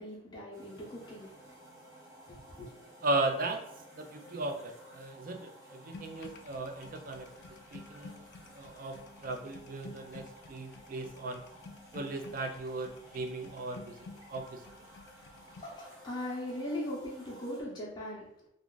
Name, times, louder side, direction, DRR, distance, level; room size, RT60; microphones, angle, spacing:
voice 1, 0.0-1.4 2.3-2.7 15.6-18.3, left 1 dB, 20° left, -7 dB, 0.7 m, -39 dB
sound 1, 0.5-17.6, equal, 15° right, 0.7 m, -55 dB
voice 2, 3.0-3.6 4.0-8.2 8.5-11.4 11.9-14.0 14.3-14.6, right 2 dB, 45° right, 4 dB, 0.4 m, -37 dB
sound 2, 5.9-15.6, left 4 dB, 55° left, 0.3 m, -52 dB
2.5 x 2.3 x 3.6 m, 0.77 s
head